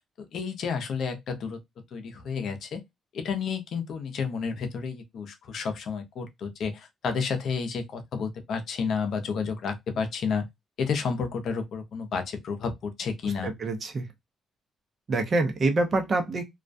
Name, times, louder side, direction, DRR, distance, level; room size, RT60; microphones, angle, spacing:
voice 1, 0.2-1.6 1.9-2.8 3.1-10.5 10.8-13.5, left 5 dB, 65° left, 0.6 m, -31 dB
voice 2, 13.4-14.1 15.1-16.4, right 2 dB, 45° right, 0.6 m, -26 dB
2.3 x 2.2 x 2.5 m
cardioid pair, 90°, 0 cm